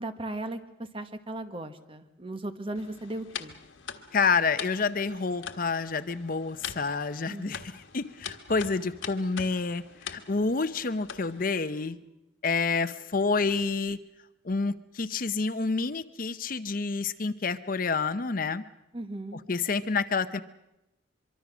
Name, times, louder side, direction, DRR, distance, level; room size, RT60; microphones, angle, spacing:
voice 1, 0.0-3.5 7.2-7.8 18.9-19.4, right 1 dB, 30° right, 8 dB, 1.3 m, -37 dB
sound 1, 2.8-11.6, left 7 dB, 90° left, 1.5 m, -43 dB
sound 2, 3.5-4.0 6.5-7.0 8.5-9.0 11.5-12.2, right 1 dB, 70° right, 1.4 m, -55 dB
voice 2, 4.1-12.0 12.4-14.0 14.4-18.6 19.5-20.4, left 4 dB, 45° left, 12 dB, 0.7 m, -28 dB
24.0 x 24.0 x 6.1 m, 0.91 s
head